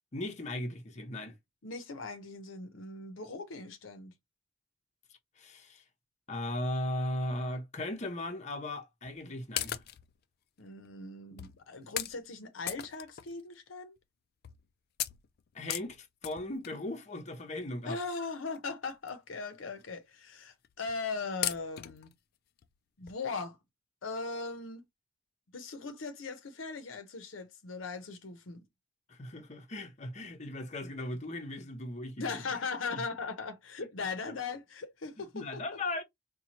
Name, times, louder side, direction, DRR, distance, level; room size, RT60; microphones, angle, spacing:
voice 1, 0.1-1.3 5.4-5.8 6.3-9.8 15.5-18.0 29.1-32.4 32.9-33.0 34.3-34.4 35.2-36.0, left 1 dB, 35° left, 0.8 m, -37 dB
voice 2, 1.6-4.1 10.6-14.0 17.9-22.1 23.0-23.6 24.0-24.8 25.5-28.6 32.2-35.6, left 4 dB, 80° left, 0.7 m, -39 dB
sound 1, 9.0-9.2 9.6-10.2 10.8-10.9 11.4-11.6 12.0-12.2 12.7-13.5 14.0-14.1 14.4-14.7 15.0-16.9 17.8-17.9 18.5-18.6 18.9-19.1 19.5-19.6 19.8-19.9 20.6-21.0 21.4-22.1 22.6-22.7 23.1-23.2, left 12 dB, 55° left, 0.4 m, -37 dB
4.2 x 2.3 x 2.8 m
head